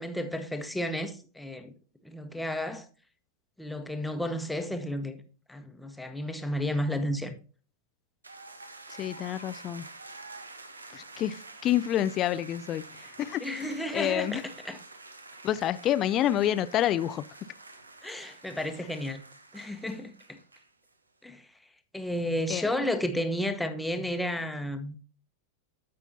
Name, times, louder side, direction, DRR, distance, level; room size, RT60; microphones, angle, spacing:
voice 1, 0.0-1.7 2.0-2.9 3.6-5.2 5.5-7.4 13.4-14.8 18.0-19.2 19.5-20.4 21.2-21.5 21.9-24.9, left 1 dB, 5° left, 1.0 m, -32 dB
sound 1, 8.2-20.9, right 3 dB, 80° right, 0.8 m, -48 dB
voice 2, 8.9-9.9 10.9-13.4 13.9-14.4 15.4-17.5 22.5-22.7, left 12 dB, 35° left, 0.4 m, -28 dB
14.0 x 5.6 x 2.7 m
figure-of-eight pair, 90°, 0 cm